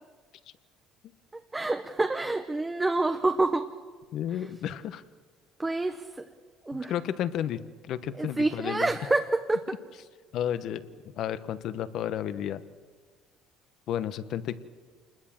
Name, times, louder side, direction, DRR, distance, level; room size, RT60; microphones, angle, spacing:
voice 1, 1.5-3.7 5.6-6.3 6.6-6.9 8.2-9.8, right 2 dB, 10° right, 7 dB, 0.8 m, -27 dB
voice 2, 4.1-5.0 6.7-7.6 7.9-8.9 10.3-12.6 13.9-14.6, left 10 dB, 55° left, 13 dB, 1.1 m, -32 dB
28.0 x 20.5 x 7.5 m, 1.5 s
cardioid pair, 145°, 0 cm